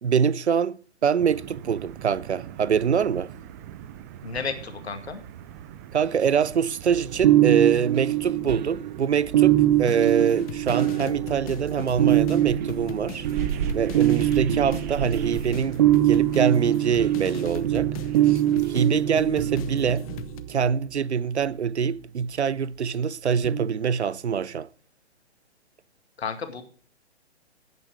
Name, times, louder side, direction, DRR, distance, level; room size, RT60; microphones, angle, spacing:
voice 1, 0.0-3.3 5.9-17.9 18.2-18.4 18.7-20.1 20.5-24.7, right 7 dB, 80° right, 0.6 m, -24 dB
sound 1, 1.2-19.1, right 9 dB, 15° right, 0.4 m, -39 dB
voice 2, 4.2-5.2 26.2-26.6, left 5 dB, 70° left, 2.1 m, -32 dB
sound 2, 6.9-20.7 23.4-23.7, right 13 dB, 40° right, 0.8 m, -23 dB
sound 3, 9.7-20.4, left 11 dB, 35° left, 0.8 m, -40 dB
12.0 x 9.3 x 4.8 m
figure-of-eight pair, 125°, 33 cm